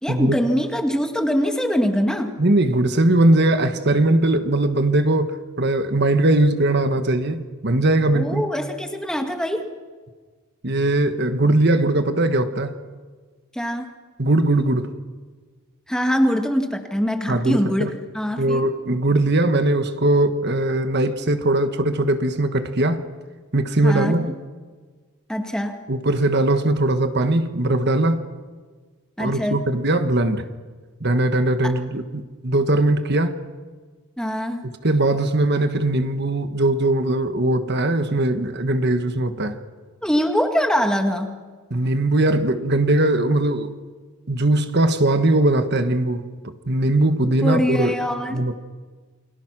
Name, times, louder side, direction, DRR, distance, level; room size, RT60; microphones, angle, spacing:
voice 1, 0.0-2.4 8.1-9.7 13.5-13.9 15.9-18.7 23.8-24.2 25.3-25.8 29.2-29.6 31.6-31.8 34.2-34.7 40.0-41.3 47.3-48.6, equal, 5° left, 5 dB, 1.8 m, -23 dB
voice 2, 2.4-8.4 10.6-12.7 14.2-14.9 17.3-17.9 18.4-23.1 23.5-24.3 25.9-28.2 29.2-30.5 31.0-33.4 34.8-39.6 41.7-43.7 44.3-48.0 48.3-48.5, right 2 dB, 50° right, 9 dB, 1.4 m, -20 dB
29.0 x 23.5 x 6.1 m, 1.4 s
head